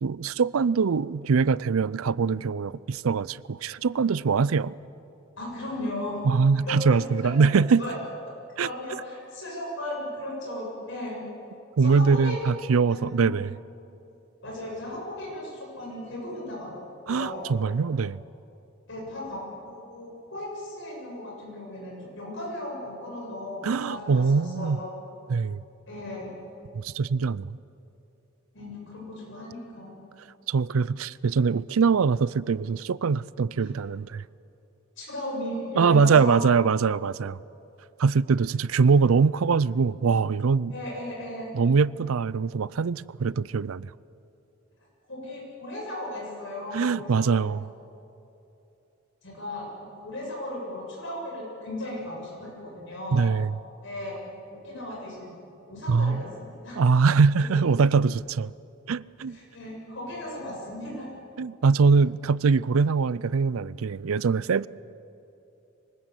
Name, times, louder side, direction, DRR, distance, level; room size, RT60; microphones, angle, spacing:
voice 1, 0.0-4.7 6.3-7.8 8.6-8.7 11.8-13.5 17.1-18.2 23.6-24.8 25.3-25.6 26.7-27.6 30.5-34.2 35.8-37.4 38.0-40.7 41.5-43.9 46.7-47.6 53.1-53.5 55.9-56.2 56.8-58.5 58.9-59.4 61.4-64.7, right 5 dB, 85° right, 0.5 m, -23 dB
voice 2, 5.4-7.3 7.8-8.0 8.6-11.2 11.8-12.4 12.9-13.4 14.4-17.7 18.9-24.9 25.9-26.3 28.5-29.9 33.6-33.7 35.0-36.4 40.7-41.6 45.1-47.4 49.2-53.3 53.8-54.2 54.5-55.4 55.7-56.8 57.5-57.6 59.3-61.1, left 1 dB, 60° left, 7.3 m, -36 dB
24.0 x 19.5 x 8.3 m
head